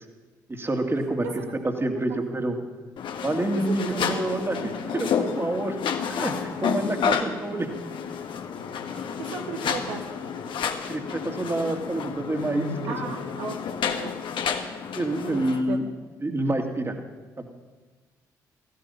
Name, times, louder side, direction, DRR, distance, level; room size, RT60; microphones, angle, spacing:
voice 1, 0.5-2.6 3.2-7.7 10.9-13.1 14.9-15.9 16.2-17.0 17.4-17.5, right 1 dB, 25° right, 4 dB, 2.4 m, -28 dB
sound 1, 3.0-15.6, left 7 dB, 60° left, 1.4 m, -30 dB
voice 2, 8.9-10.0 12.9-13.6 13.8-14.1 15.3-15.8, right 5 dB, 70° right, 3 dB, 1.3 m, -35 dB
15.5 x 15.5 x 5.7 m, 1.3 s
figure-of-eight pair, 45°, 10 cm